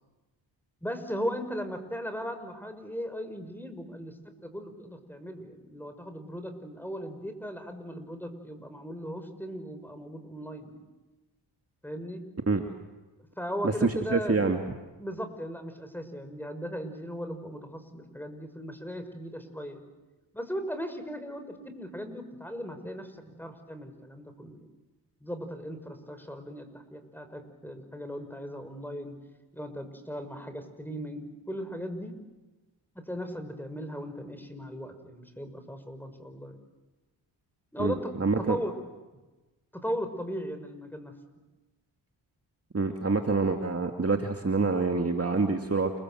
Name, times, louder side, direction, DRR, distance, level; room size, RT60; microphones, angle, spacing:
voice 1, 0.8-10.8 11.8-12.2 13.4-14.5 15.0-19.9 20.3-24.7 25.2-29.2 29.5-32.2 32.9-36.6 37.7-38.7 39.7-41.1, equal, 5° left, 8 dB, 5.9 m, -37 dB
voice 2, 13.6-14.6 37.8-38.6 42.7-45.9, right 3 dB, 30° right, 4 dB, 2.5 m, -26 dB
29.5 x 23.5 x 7.8 m, 1.1 s
supercardioid pair, 45°, 49 cm